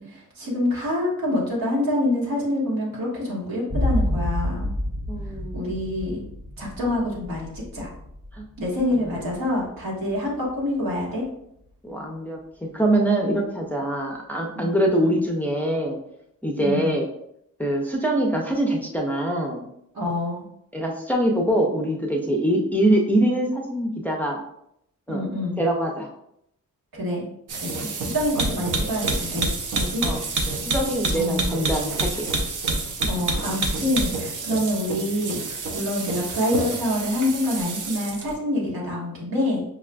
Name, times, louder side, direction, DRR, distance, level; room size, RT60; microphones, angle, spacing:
voice 1, 0.1-4.7 5.5-6.2 6.6-7.9 8.6-11.2 14.5-14.9 16.6-17.0 19.9-20.5 25.1-25.6 26.9-27.3 27.6-30.0 31.1-31.6 33.1-39.6, left 1 dB, 85° right, -5 dB, 1.5 m, -26 dB
sound 1, 3.7-11.1, left 1 dB, 35° right, 1.2 m, -30 dB
voice 2, 5.1-5.9 8.3-8.4 8.9-9.2 11.8-12.4 12.7-16.0 16.4-17.1 17.6-19.6 20.7-24.4 25.1-25.3 25.6-26.1 30.0-30.2 30.7-32.3, right 1 dB, 5° left, 0 dB, 0.4 m, -24 dB
sound 2, 27.5-38.3, right 3 dB, 65° right, 0.6 m, -28 dB
5.5 x 2.4 x 2.2 m, 0.76 s
wide cardioid pair, 150°, 34 cm